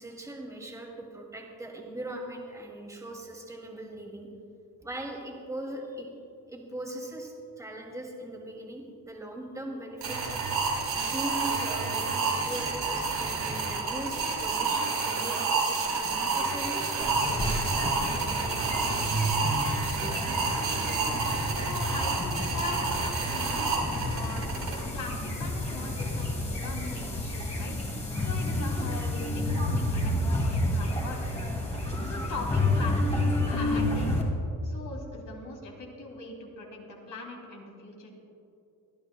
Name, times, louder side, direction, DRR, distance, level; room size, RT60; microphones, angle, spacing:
voice 1, 0.0-4.3 4.8-6.1 6.5-10.3 11.1-18.8, right 1 dB, 10° right, -2 dB, 2.5 m, -40 dB
sound 1, 10.0-24.7, right 4 dB, 85° right, 3.3 m, -29 dB
sound 2, 17.0-34.2, left 1 dB, 20° left, 2.6 m, -30 dB
voice 2, 21.5-27.8 28.2-31.2 32.0-33.2 33.4-34.1 34.6-38.1, left 2 dB, 55° left, 0 dB, 2.9 m, -40 dB
23.5 x 11.5 x 2.3 m, 2.7 s
cardioid pair, 105°, 36 cm